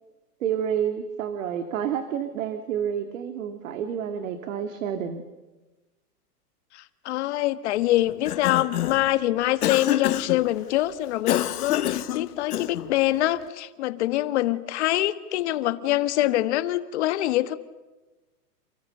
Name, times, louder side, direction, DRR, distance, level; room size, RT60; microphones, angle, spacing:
voice 1, 0.4-5.2, right 8 dB, 55° right, 7 dB, 2.4 m, -29 dB
voice 2, 6.7-17.6, left 15 dB, 45° left, 12 dB, 1.5 m, -25 dB
Cough, 8.1-9.1 9.6-10.4 11.3-12.9, left 12 dB, 65° left, 1.4 m, -27 dB
29.0 x 28.0 x 6.7 m, 1.1 s
hypercardioid pair, 160°, 48 cm